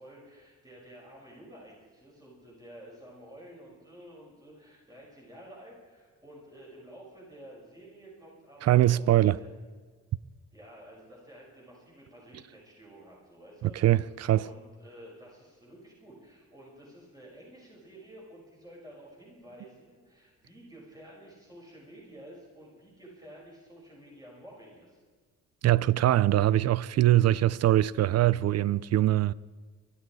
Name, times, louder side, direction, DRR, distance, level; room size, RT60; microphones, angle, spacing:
voice 1, 0.0-9.1 9.3-9.5 10.5-25.0, right 1 dB, 10° right, 6.4 m, -51 dB
voice 2, 8.6-9.4 13.6-14.4 25.6-29.3, right 14 dB, 55° right, 0.6 m, -23 dB
23.5 x 12.5 x 4.8 m
cardioid pair, 90°, 30 cm